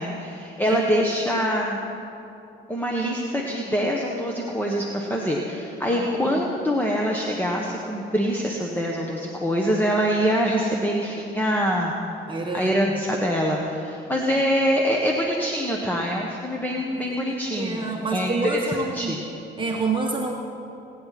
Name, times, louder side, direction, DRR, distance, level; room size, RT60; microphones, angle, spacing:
voice 1, 0.0-1.8 2.7-11.9 12.5-19.2, equal, 10° left, -1 dB, 1.5 m, -24 dB
voice 2, 5.9-6.4 12.3-12.7 17.6-19.1 19.6-20.3, right 3 dB, 25° right, -1 dB, 1.4 m, -28 dB
28.0 x 9.9 x 4.3 m, 2.8 s
cardioid pair, 90°, 20 cm